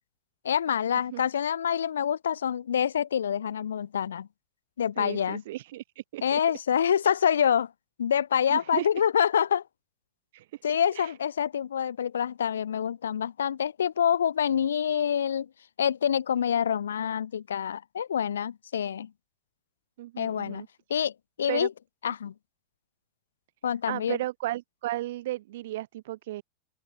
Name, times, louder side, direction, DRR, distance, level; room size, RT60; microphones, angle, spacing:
voice 1, 0.4-4.3 4.8-5.4 6.2-7.7 8.0-9.6 10.6-15.5 15.8-19.1 20.2-21.1 21.4-21.7 22.0-22.3 23.6-24.2, left 8 dB, 65° left, 0.4 m, -26 dB
voice 2, 5.0-6.4 8.5-8.9 10.3-10.6 10.9-11.2 20.0-20.7 21.5-21.7 23.9-26.4, right 15 dB, 55° right, 0.6 m, -34 dB
open air
figure-of-eight pair, 90°, 0 cm